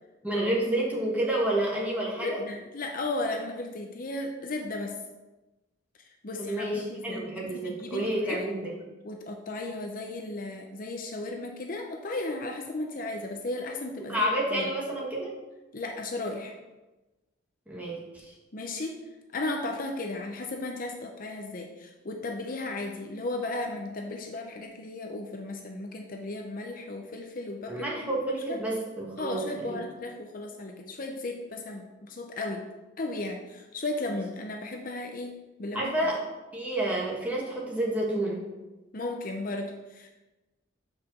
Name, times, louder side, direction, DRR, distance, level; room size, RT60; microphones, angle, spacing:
voice 1, 0.2-2.4 6.4-8.7 14.0-15.3 17.7-18.3 27.7-29.8 35.7-36.2 36.5-38.4, right 1 dB, 10° right, -4 dB, 1.6 m, -29 dB
voice 2, 2.2-4.9 6.2-8.4 9.0-14.7 15.7-16.5 18.5-19.0 19.3-28.6 29.2-32.6 33.0-35.3 35.6-35.9 38.9-40.1, left 2 dB, 45° left, 3 dB, 0.6 m, -35 dB
5.7 x 4.9 x 6.2 m, 1.1 s
head